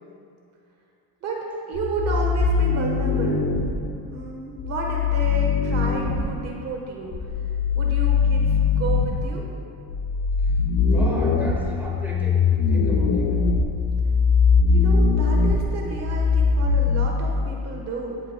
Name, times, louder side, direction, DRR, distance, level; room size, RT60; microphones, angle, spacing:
voice 1, 1.2-3.4 4.0-7.1 7.7-9.5 14.6-18.2, right 3 dB, 35° right, 0 dB, 1.2 m, -31 dB
sound 1, 1.7-3.7 4.6-6.2 7.1-9.2 9.9-17.1, left 5 dB, 75° left, 1.3 m, -21 dB
voice 2, 10.8-13.4, equal, 5° right, -3 dB, 1.4 m, -36 dB
17.0 x 11.0 x 2.2 m, 2.5 s
cardioid pair, 180°, 44 cm